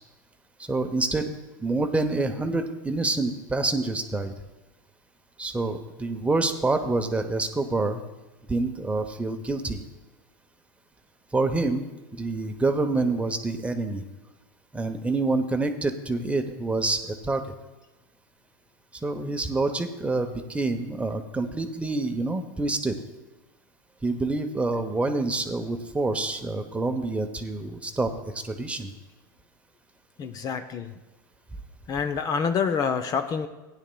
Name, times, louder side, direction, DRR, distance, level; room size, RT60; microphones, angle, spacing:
voice 1, 0.7-1.3 1.6-4.3 5.4-8.0 8.5-9.8 11.3-11.8 12.1-14.0 14.7-17.4 19.0-23.0 24.0-28.1 28.4-28.9, right 2 dB, 10° right, 6 dB, 0.8 m, -27 dB
voice 2, 30.2-31.0 31.9-33.5, left 6 dB, 35° left, 10 dB, 0.6 m, -27 dB
16.0 x 10.0 x 2.3 m, 1.1 s
hypercardioid pair, 110°, 11 cm